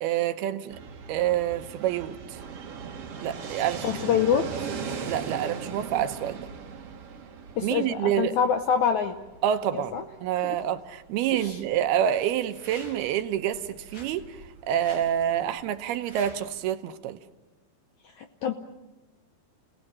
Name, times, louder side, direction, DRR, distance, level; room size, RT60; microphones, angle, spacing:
voice 1, 0.0-0.8 1.1-2.4 3.2-3.9 5.0-6.5 7.6-8.4 9.4-9.9 10.2-14.4 14.7-17.2, right 10 dB, 80° right, 9 dB, 2.9 m, -27 dB
Fixed-wing aircraft airplane, 0.7-16.4, right 6 dB, 50° right, 2.0 m, -40 dB
voice 2, 3.8-4.7 7.6-9.1 9.7-10.0 10.4-10.6 11.3-11.6 18.2-18.5, left 7 dB, 75° left, 7 dB, 1.7 m, -26 dB
sound 1, 12.4-13.2 13.9-14.1 14.7-15.1 15.9-16.5, left 2 dB, 55° left, 5.4 m, -48 dB
28.5 x 18.5 x 7.5 m, 1.1 s
omnidirectional pair, 4.5 m